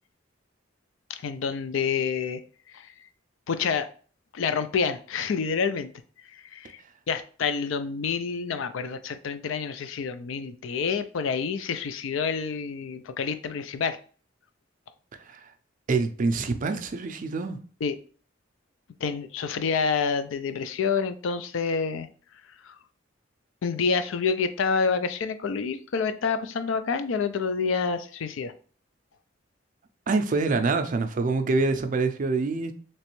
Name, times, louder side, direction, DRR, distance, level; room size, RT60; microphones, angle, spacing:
voice 1, 1.1-2.4 2.7-2.9 3.5-3.9 4.3-5.9 6.3-6.8 7.1-14.0 17.8-17.9 19.0-22.1 22.6-22.7 23.6-28.5, left 5 dB, 75° left, 0.4 m, -28 dB
voice 2, 15.1-15.5 15.9-17.6 30.1-32.7, right 3 dB, 45° right, 0.4 m, -26 dB
3.2 x 3.0 x 3.0 m
head